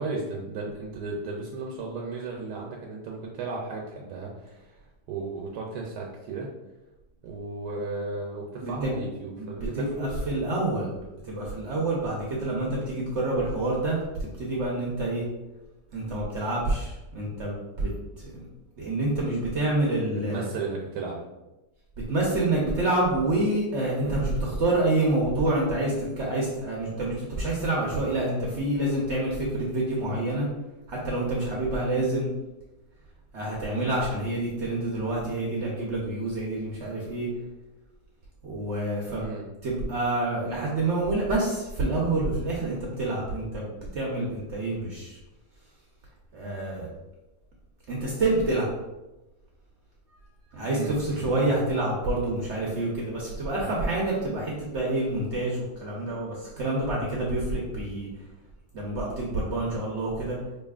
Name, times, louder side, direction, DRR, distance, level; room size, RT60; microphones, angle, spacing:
voice 1, 0.0-6.5 7.2-10.2 20.1-21.2 39.2-39.5 50.7-51.6, right 3 dB, 80° right, -1 dB, 1.1 m, -35 dB
voice 2, 8.6-9.0 9.4-10.9 11.2-15.3 15.9-17.9 18.2-18.4 18.8-20.5 22.1-30.5 30.9-32.3 33.3-37.3 38.4-39.2 39.6-45.2 46.3-46.9 47.9-48.7 50.5-58.1 58.7-60.4, right 2 dB, 60° right, -4 dB, 0.8 m, -27 dB
4.9 x 2.7 x 2.3 m, 1.0 s
omnidirectional pair, 1.8 m